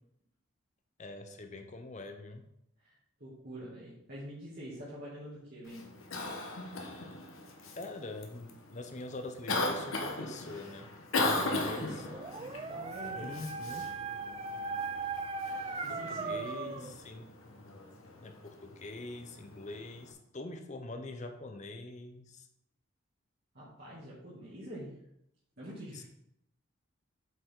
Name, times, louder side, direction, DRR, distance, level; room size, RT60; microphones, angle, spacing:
voice 1, 1.0-2.5 7.7-10.9 11.2-11.9 13.1-13.9 15.9-17.3 18.2-22.5 25.9-26.0, left 2 dB, 35° left, 7 dB, 0.7 m, -44 dB
voice 2, 2.8-5.8 11.2-12.0 12.7-13.3 15.8-16.9 23.5-25.0 25.6-26.0, equal, 50° right, -9 dB, 2.2 m, -45 dB
Cough, 5.6-20.1, left 2 dB, 80° left, 1.1 m, -39 dB
Dog, 11.9-17.0, right 4 dB, 25° right, 0.3 m, -38 dB
8.1 x 5.2 x 3.7 m, 0.77 s
head